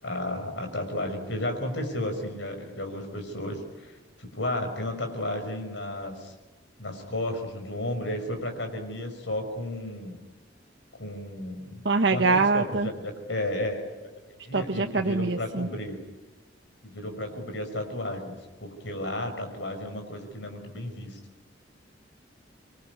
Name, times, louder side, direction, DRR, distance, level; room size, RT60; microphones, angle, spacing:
voice 1, 0.0-6.3 6.8-10.2 10.9-11.8 12.1-16.0 16.8-21.2, left 1 dB, 70° left, 5 dB, 5.6 m, -33 dB
voice 2, 11.8-12.9 14.5-15.7, right 3 dB, 60° right, 3 dB, 1.2 m, -24 dB
26.0 x 23.0 x 9.6 m, 1.1 s
head